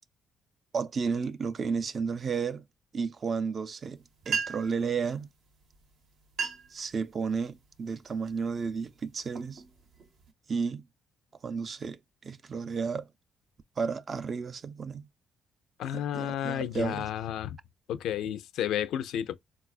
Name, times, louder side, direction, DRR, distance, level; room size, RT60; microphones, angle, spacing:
voice 1, 0.7-2.7 2.9-5.3 6.7-9.6 10.5-10.9 11.4-13.1 13.8-15.1 16.1-17.1, right 5 dB, 45° right, 0.4 m, -32 dB
sound 1, 4.0-4.1 4.2-4.8 5.7-5.9 6.2-6.8 7.3-7.7 8.3-8.5 9.1-10.3, right 5 dB, 70° right, 0.7 m, -35 dB
voice 2, 15.8-17.6 17.9-19.4, left 10 dB, 85° left, 0.4 m, -32 dB
4.0 x 2.3 x 2.4 m
cardioid pair, 90°, 0 cm